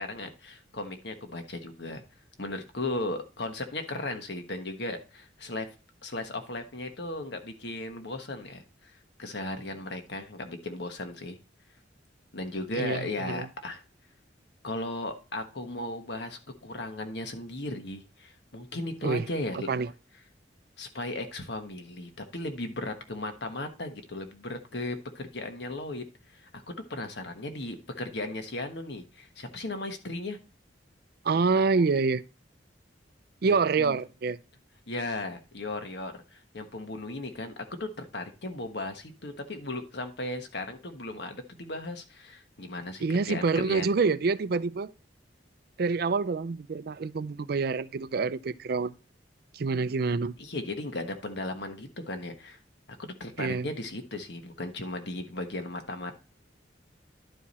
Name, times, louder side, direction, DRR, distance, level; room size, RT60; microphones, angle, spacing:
voice 1, 0.0-2.0 2.4-5.7 6.0-11.4 12.3-13.8 14.6-19.7 20.8-30.4 31.3-31.8 33.5-34.0 34.9-37.5 37.8-43.9 50.4-52.6 53.0-56.2, left 2 dB, 65° left, 1.3 m, -36 dB
voice 2, 12.7-13.5 19.0-19.3 19.5-19.9 31.2-32.2 33.4-34.4 43.0-44.9 45.8-48.9 49.5-50.3 53.4-53.7, right 4 dB, 55° right, 0.4 m, -27 dB
11.5 x 4.7 x 4.2 m
head